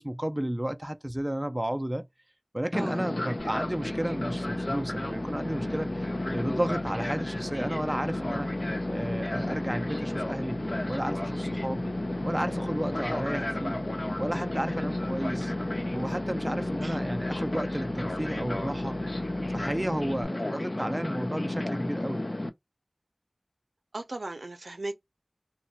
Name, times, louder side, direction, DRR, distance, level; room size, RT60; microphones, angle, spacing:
voice 1, 0.0-2.1 2.5-11.9 12.2-13.8 14.2-15.5 15.9-19.0 19.5-22.2, right 1 dB, 25° right, 0.3 m, -33 dB
Fixed-wing aircraft airplane, 2.7-22.5, left 1 dB, 55° left, 0.3 m, -32 dB
sound 1, 3.4-20.2, right 3 dB, 35° left, 1.0 m, -48 dB
voice 2, 23.9-24.9, right 2 dB, 85° right, 0.5 m, -36 dB
2.9 x 2.1 x 2.6 m
wide cardioid pair, 40°, 0 cm